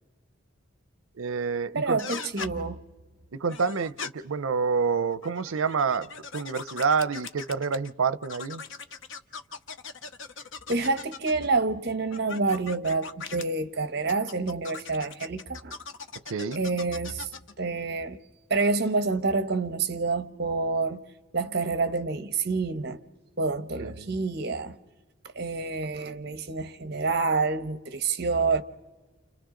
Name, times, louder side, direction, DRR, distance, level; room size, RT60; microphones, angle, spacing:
voice 1, 1.1-2.1 3.3-8.6 16.3-16.6 23.8-24.1, right 5 dB, 85° right, 0.6 m, -28 dB
voice 2, 1.7-2.8 10.7-15.8 16.6-17.3 17.6-18.2 18.5-21.0 21.3-23.0 23.4-24.8 25.3-28.6, right 3 dB, 50° right, 1.0 m, -28 dB
sound 1, 2.0-2.5 3.5-4.1 5.1-7.9 8.2-11.5 12.1-13.4 14.1-17.5, left 5 dB, 65° left, 0.8 m, -40 dB
30.0 x 28.0 x 3.8 m
head